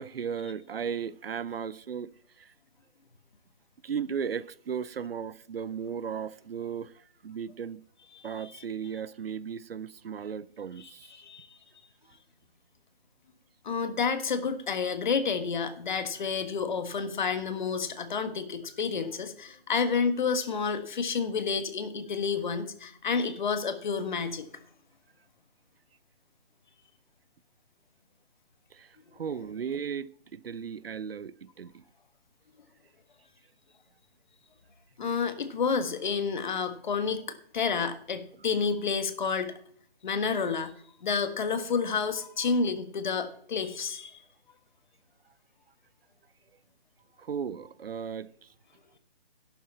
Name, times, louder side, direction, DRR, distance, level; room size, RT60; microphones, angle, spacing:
voice 1, 0.0-2.1 2.4-2.5 3.8-7.8 8.2-11.1 28.7-28.9 29.1-31.8 47.2-48.5, right 7 dB, 70° right, 0.6 m, -36 dB
voice 2, 10.8-11.5 13.6-24.5 35.0-39.5 40.0-40.7 41.0-44.2, left 5 dB, 50° left, 1.4 m, -30 dB
11.5 x 9.4 x 4.1 m
hypercardioid pair, 160°, 31 cm